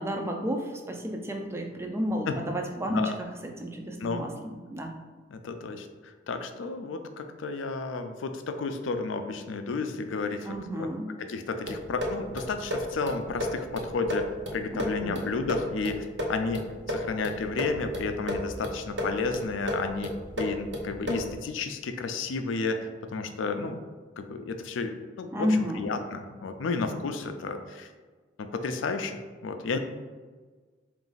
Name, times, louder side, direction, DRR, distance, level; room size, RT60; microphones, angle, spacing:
voice 1, 0.0-3.3 3.6-4.9 10.4-11.1 14.7-15.3 25.3-25.9, equal, 15° right, 3 dB, 0.4 m, -31 dB
voice 2, 5.3-10.9 11.2-14.3 14.5-16.6 16.9-23.8 24.2-27.9 28.4-29.2 29.4-29.8, left 4 dB, 80° left, 7 dB, 0.4 m, -32 dB
sound 1, 11.7-21.4, equal, 60° right, 0.7 m, -34 dB
4.0 x 2.5 x 3.9 m, 1.4 s
head